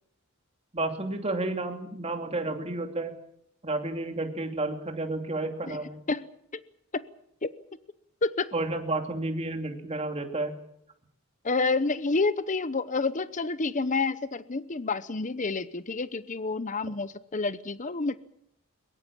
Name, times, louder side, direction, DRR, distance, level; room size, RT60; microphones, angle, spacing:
voice 1, 0.7-3.1 3.6-6.0 8.5-10.5, right 2 dB, 30° right, 4 dB, 2.9 m, -31 dB
voice 2, 11.4-18.2, left 3 dB, 35° left, 14 dB, 0.8 m, -29 dB
23.0 x 22.0 x 7.3 m, 0.72 s
head